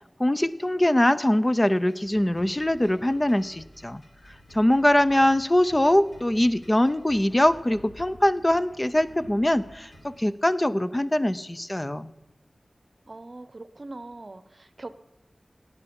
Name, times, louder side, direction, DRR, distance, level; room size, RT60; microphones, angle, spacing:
voice 1, 0.2-4.0 4.5-12.1, left 1 dB, 20° left, 13 dB, 0.5 m, -22 dB
sound 1, 1.7-10.2, equal, 60° left, 2.7 m, -51 dB
voice 2, 13.1-14.9, right 2 dB, 50° right, 13 dB, 0.7 m, -41 dB
18.0 x 9.5 x 5.3 m, 1.1 s
wide cardioid pair, 65°, 0 cm